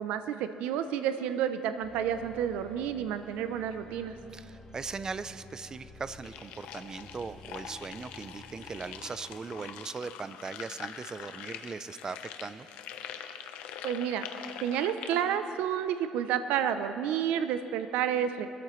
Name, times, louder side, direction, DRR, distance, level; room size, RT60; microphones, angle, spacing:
voice 1, 0.0-4.2 13.8-14.3 14.6-18.5, right 9 dB, 85° right, 10 dB, 0.6 m, -30 dB
sound 1, 1.8-9.3, left 2 dB, 30° left, 1.9 m, -52 dB
voice 2, 4.3-12.7, right 4 dB, 30° right, 13 dB, 0.5 m, -39 dB
sound 2, 6.2-15.4, left 9 dB, 90° left, 0.8 m, -44 dB
22.5 x 13.0 x 3.1 m, 2.7 s
cardioid pair, 100°, 2 cm